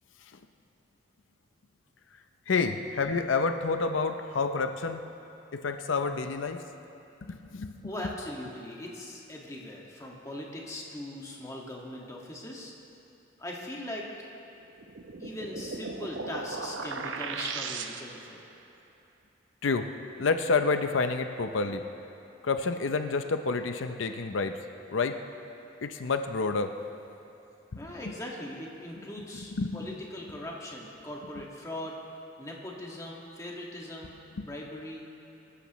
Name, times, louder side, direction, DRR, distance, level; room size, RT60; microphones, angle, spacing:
voice 1, 2.5-5.0 5.5-6.6 7.2-7.9 19.6-19.9 20.2-21.9 22.4-24.6 24.9-25.2 25.8-26.8 27.7-28.1 29.3-29.9 34.4-34.5, left 4 dB, 90° left, 7 dB, 0.6 m, -29 dB
voice 2, 7.8-12.7 13.4-14.1 15.2-18.4 27.8-32.0 32.4-35.1, left 1 dB, 15° left, -3 dB, 1.8 m, -40 dB
sound 1, 14.8-18.4, right 4 dB, 85° right, 0.8 m, -37 dB
24.5 x 14.0 x 3.1 m, 2.8 s
head